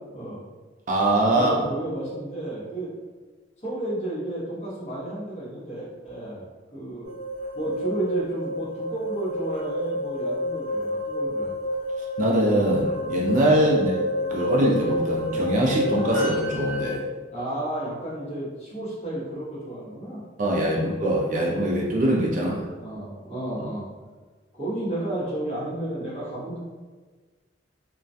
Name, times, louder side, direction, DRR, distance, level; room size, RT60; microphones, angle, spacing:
voice 1, 0.1-0.4 1.3-2.9 3.6-6.4 6.7-7.1 7.5-11.5 13.7-13.9 17.3-20.2 22.3-23.9 24.5-26.6, right 1 dB, 35° left, -9 dB, 0.9 m, -32 dB
voice 2, 0.9-1.7 12.2-14.0 14.3-17.0 20.4-22.5, right 1 dB, 40° right, -2 dB, 0.3 m, -22 dB
sound 1, 7.0-16.9, left 1 dB, 20° left, 1.4 m, -29 dB
2.2 x 2.2 x 2.6 m, 1.3 s
head